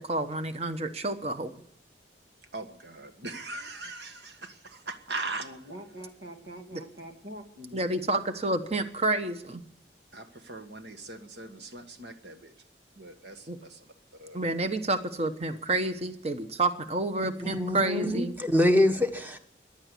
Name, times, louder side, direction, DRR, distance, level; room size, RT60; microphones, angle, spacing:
voice 1, 0.0-1.5 7.7-9.6 13.5-13.6 14.3-18.3, right 2 dB, 35° right, 1.1 m, -29 dB
voice 2, 2.5-5.5 10.1-12.5 13.0-13.9 14.2-14.4, right 3 dB, 70° right, 1.6 m, -40 dB
voice 3, 5.4-7.8, right 1 dB, 85° right, 2.4 m, -44 dB
voice 4, 17.2-19.4, left 1 dB, 10° right, 1.1 m, -25 dB
15.5 x 10.5 x 8.3 m
head